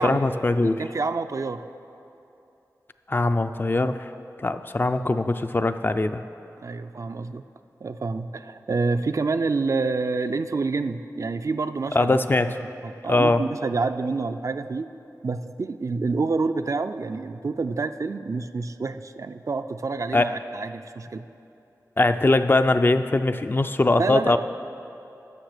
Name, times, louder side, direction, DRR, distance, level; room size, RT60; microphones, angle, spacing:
voice 1, 0.0-0.8 3.1-4.1 4.4-6.2 12.0-12.6 13.1-13.4 20.1-20.3 22.0-24.4, left 2 dB, 30° left, 9 dB, 0.3 m, -21 dB
voice 2, 0.6-1.6 6.6-7.4 7.8-12.2 12.8-14.9 15.2-21.2 24.0-24.4, right 4 dB, 50° right, 10 dB, 0.3 m, -28 dB
12.5 x 6.5 x 4.9 m, 2.8 s
wide cardioid pair, 75°, 7 cm